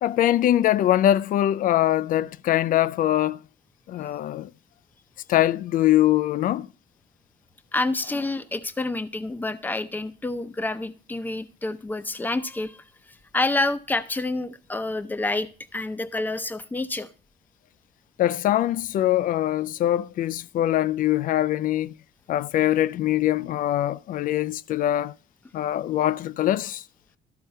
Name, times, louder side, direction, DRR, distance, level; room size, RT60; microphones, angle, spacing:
voice 1, 0.0-3.4 3.9-4.5 5.3-6.7 18.2-21.9 22.3-25.1 25.5-26.8, left 13 dB, 55° left, 0.4 m, -23 dB
voice 2, 7.7-12.8 13.3-17.1, left 2 dB, 10° left, 0.6 m, -28 dB
13.0 x 4.4 x 5.5 m
cardioid pair, 110°, 17 cm